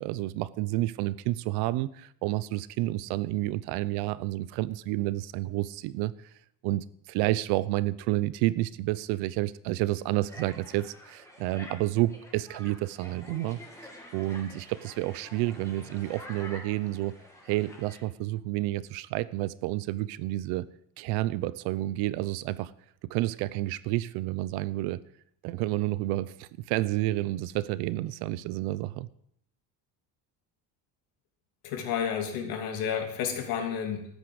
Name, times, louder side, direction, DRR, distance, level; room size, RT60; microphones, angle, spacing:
voice 1, 0.0-6.1 6.6-13.6 14.1-17.2 17.4-20.7 21.0-22.7 23.1-25.0 25.4-29.1, right 17 dB, 85° right, 0.8 m, -30 dB
sound 1, 10.3-18.0, left 1 dB, 10° left, 2.5 m, -48 dB
voice 2, 31.6-34.1, left 7 dB, 70° left, 3.0 m, -31 dB
13.5 x 9.6 x 7.9 m
cardioid pair, 175°, 38 cm